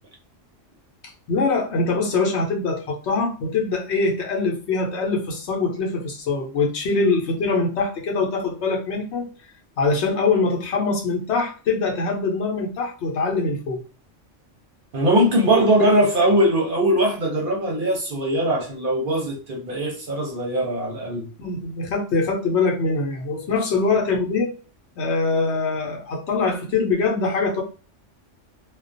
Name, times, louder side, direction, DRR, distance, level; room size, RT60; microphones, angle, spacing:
voice 1, 1.3-9.3 9.8-13.8 21.4-24.5 25.0-27.6, left 3 dB, 70° left, 0.9 m, -23 dB
voice 2, 14.9-21.3, right 1 dB, 55° right, 0.7 m, -20 dB
2.3 x 2.2 x 2.5 m
omnidirectional pair, 1.2 m